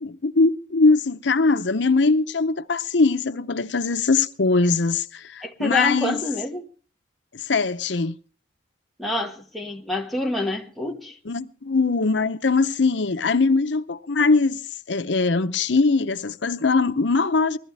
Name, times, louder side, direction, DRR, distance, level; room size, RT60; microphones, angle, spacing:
voice 1, 0.0-6.2 7.3-8.1 11.3-14.6 14.9-17.6, left 3 dB, 85° left, 0.8 m, -21 dB
voice 2, 5.4-6.6 9.0-11.2, left 2 dB, ahead, 1.6 m, -27 dB
21.0 x 14.5 x 3.4 m
head